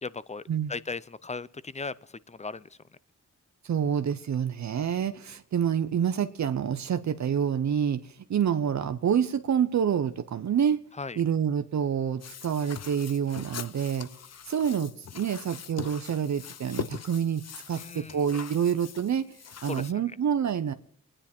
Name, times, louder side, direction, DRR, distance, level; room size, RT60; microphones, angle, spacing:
voice 1, 0.0-0.4 0.7-2.7 11.0-11.2 17.7-18.2 19.6-19.9, left 4 dB, 20° left, 19 dB, 0.6 m, -37 dB
voice 2, 3.6-10.8 11.2-14.1 14.5-19.3 19.6-20.7, right 8 dB, 65° right, 9 dB, 0.8 m, -27 dB
sound 1, 12.2-19.9, left 7 dB, 55° left, 0.8 m, -42 dB
25.0 x 10.0 x 4.3 m, 0.62 s
cardioid pair, 70°, 30 cm